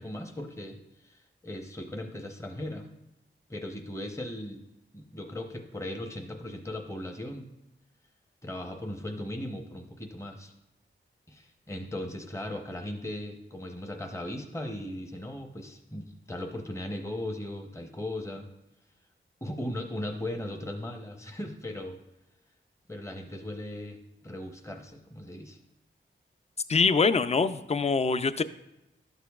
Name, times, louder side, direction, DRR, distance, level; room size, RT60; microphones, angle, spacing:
voice 1, 0.0-2.9 3.5-4.6 4.9-7.5 8.4-10.5 11.3-18.5 19.4-22.0 22.9-25.6, left 1 dB, 15° left, 4 dB, 0.8 m, -38 dB
voice 2, 26.7-28.4, left 4 dB, 30° left, 13 dB, 0.4 m, -24 dB
11.5 x 6.6 x 2.3 m, 0.90 s
wide cardioid pair, 85°, 21 cm